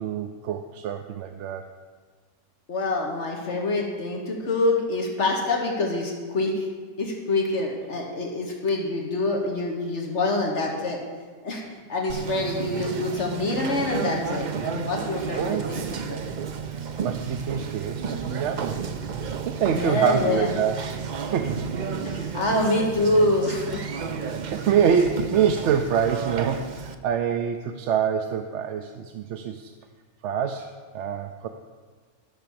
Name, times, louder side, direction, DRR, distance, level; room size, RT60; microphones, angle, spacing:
voice 1, 0.0-1.6 15.3-15.7 17.0-18.8 19.4-20.8 21.2-21.9 24.5-29.7 30.2-31.5, right 7 dB, 70° right, 6 dB, 0.9 m, -26 dB
voice 2, 2.7-6.7 7.0-11.0 11.4-15.8 16.1-16.2 19.7-20.5 22.0-23.8, left 2 dB, 65° left, 0 dB, 1.5 m, -26 dB
Conversation, 12.1-26.9, right 6 dB, 45° right, 0.6 m, -32 dB
12.5 x 5.9 x 6.9 m, 1.5 s
omnidirectional pair, 1.3 m